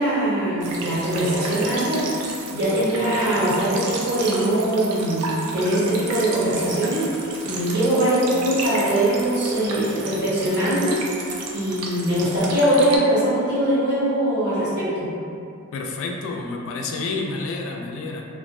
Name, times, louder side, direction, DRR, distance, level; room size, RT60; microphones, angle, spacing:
voice 1, 0.0-2.0 2.5-7.1 7.4-11.0 11.5-15.1, right 1 dB, 50° right, -10 dB, 0.9 m, -21 dB
sound 1, 0.6-13.0, right 3 dB, 85° right, 0.4 m, -33 dB
voice 2, 15.7-18.3, left 3 dB, 60° left, 1 dB, 0.3 m, -29 dB
2.4 x 2.1 x 2.5 m, 2.6 s
head